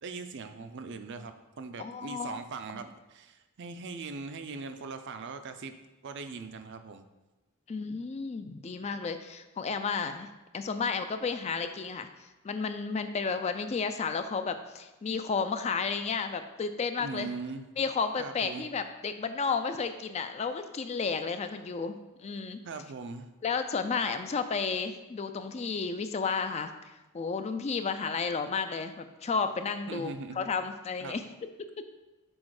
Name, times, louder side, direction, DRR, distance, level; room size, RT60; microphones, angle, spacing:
voice 1, 0.0-5.8 6.0-7.0 17.0-17.7 18.2-18.7 22.6-23.3 29.9-30.5 31.0-31.2, right 4 dB, 55° right, 8 dB, 0.5 m, -40 dB
voice 2, 1.8-2.4 7.7-10.3 10.5-12.1 12.4-17.3 17.8-22.6 23.4-26.7 27.1-31.2, left 5 dB, 30° left, 9 dB, 0.3 m, -32 dB
6.2 x 4.3 x 4.8 m, 1.1 s
head